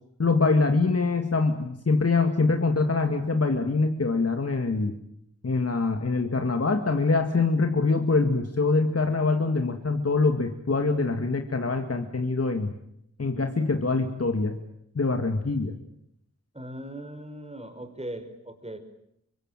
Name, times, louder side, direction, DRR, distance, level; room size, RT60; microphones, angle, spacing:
voice 1, 0.2-4.9 5.4-12.7 13.2-14.6 15.0-15.8, left 3 dB, 50° left, 5 dB, 2.2 m, -24 dB
voice 2, 16.5-18.8, right 1 dB, 20° right, 8 dB, 5.4 m, -39 dB
26.5 x 23.5 x 9.1 m, 0.77 s
cardioid pair, 50°, 30 cm